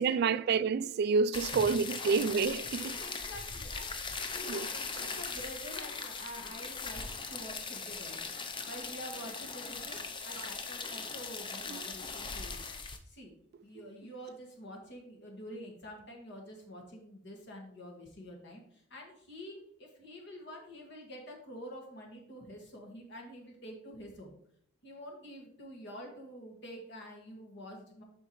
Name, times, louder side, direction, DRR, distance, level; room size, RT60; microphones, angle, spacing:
voice 1, 0.0-3.0 4.5-4.7 10.3-10.5 11.7-11.8, right 5 dB, 55° right, 0.3 m, -29 dB
sound 1, 1.3-13.0, left 4 dB, 25° left, 0.6 m, -40 dB
voice 2, 1.4-2.2 3.0-4.7 5.0-7.0 7.3-10.0 10.2-12.7 13.1-13.3 13.6-24.3 24.8-28.0, equal, 60° left, 1.7 m, -47 dB
7.8 x 5.8 x 3.1 m
head